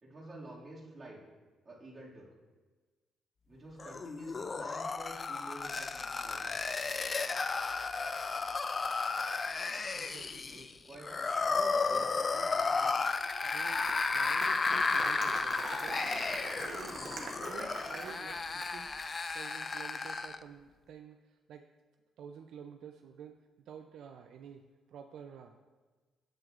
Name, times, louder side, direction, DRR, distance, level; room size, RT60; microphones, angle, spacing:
voice 1, 0.0-1.2 1.6-2.3 3.5-6.6 10.5-11.1 11.9-12.2, right 1 dB, 30° right, -6 dB, 2.1 m, -50 dB
sound 1, 3.8-20.4, left 4 dB, 35° left, 0.3 m, -33 dB
voice 2, 9.9-10.5 11.1-13.1 13.4-16.2 16.5-17.0 17.4-18.9 19.3-21.7 22.2-23.4 23.7-24.6 24.9-25.5, right 7 dB, 75° right, 5 dB, 0.4 m, -50 dB
Applause, 13.4-18.9, right 3 dB, 50° right, 1.1 m, -43 dB
7.6 x 7.6 x 2.5 m, 1.3 s
cardioid pair, 90°, 0 cm